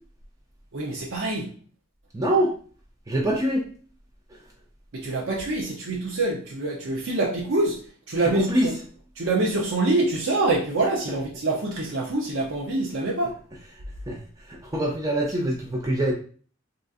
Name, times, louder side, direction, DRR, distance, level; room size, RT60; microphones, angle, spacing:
voice 1, 0.7-1.5 4.9-7.8 8.1-8.7 9.2-13.4, right 2 dB, 70° right, -3 dB, 0.6 m, -25 dB
voice 2, 2.1-2.5 3.1-3.7 8.1-8.7 14.1-14.2 14.5-16.1, right 1 dB, 20° right, -1 dB, 0.4 m, -24 dB
3.7 x 2.6 x 2.4 m, 0.43 s
head